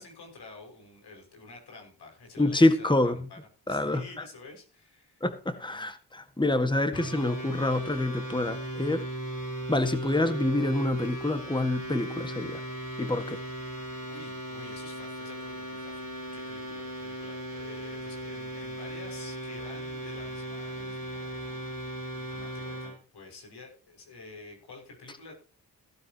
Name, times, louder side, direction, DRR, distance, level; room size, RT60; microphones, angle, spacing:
voice 1, 0.0-5.9 13.2-13.4 14.1-25.3, left 3 dB, 90° left, 2 dB, 5.9 m, -49 dB
voice 2, 2.4-3.1 3.7-4.0 5.2-9.0 9.7-12.6 13.0-13.4, left 2 dB, 10° left, 9 dB, 1.7 m, -26 dB
sound 1, 6.9-23.0, right 1 dB, 55° left, 6.3 m, -37 dB
15.5 x 13.0 x 2.9 m, 0.37 s
cardioid pair, 75°, 39 cm